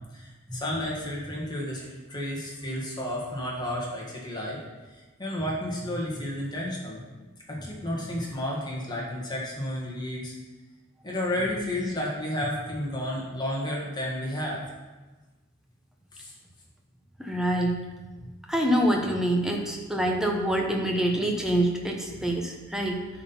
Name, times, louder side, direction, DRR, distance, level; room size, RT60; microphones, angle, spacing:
voice 1, 0.1-4.6 5.2-7.0 7.5-10.3 11.0-14.6 16.1-16.3, left 1 dB, 20° left, -3 dB, 1.5 m, -32 dB
voice 2, 17.2-17.7 18.5-23.0, right 1 dB, ahead, 0 dB, 0.9 m, -26 dB
9.7 x 4.2 x 5.5 m, 1.2 s
head